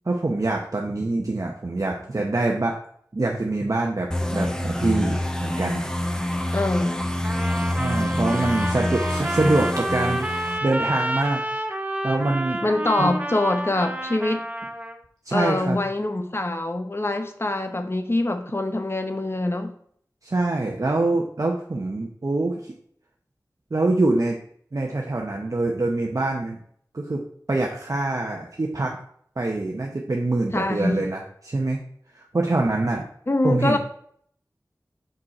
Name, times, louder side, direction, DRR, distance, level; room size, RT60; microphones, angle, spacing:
voice 1, 0.1-2.7 3.1-5.8 7.8-11.4 12.0-12.6 13.0-13.1 15.2-15.8 20.2-22.7 23.7-24.4 24.7-26.6 26.9-27.2 27.5-29.0 29.4-31.8 32.1-33.0 33.4-33.8, right 2 dB, 50° right, 0.9 m, -25 dB
sound 1, 4.1-10.6, left 1 dB, 10° left, 0.9 m, -26 dB
voice 2, 6.5-7.1 8.3-8.6 12.6-14.5 15.3-19.7 30.5-31.0 33.3-33.8, left 2 dB, 35° left, 0.9 m, -24 dB
Trumpet, 7.2-15.0, right 1 dB, 20° right, 0.9 m, -29 dB
6.2 x 5.2 x 4.2 m
wide cardioid pair, 50°, 7 cm